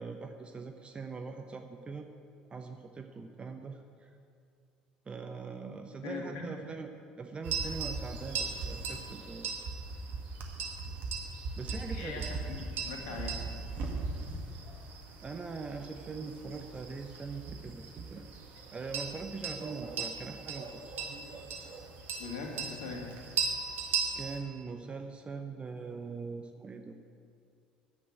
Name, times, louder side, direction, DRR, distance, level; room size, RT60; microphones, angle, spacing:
voice 1, 0.0-2.1 2.5-4.1 5.1-6.9 7.2-9.5 11.6-12.3 15.2-17.8 18.1-18.3 18.7-21.0 24.2-27.0, right 4 dB, 25° right, 6 dB, 0.9 m, -42 dB
voice 2, 6.0-6.5 11.9-13.4 22.2-23.1, left 3 dB, 65° left, -1 dB, 2.7 m, -41 dB
sound 1, 7.4-24.4, right 4 dB, 50° right, 1.8 m, -38 dB
11.0 x 8.5 x 9.2 m, 2.4 s
figure-of-eight pair, 65°, 4 cm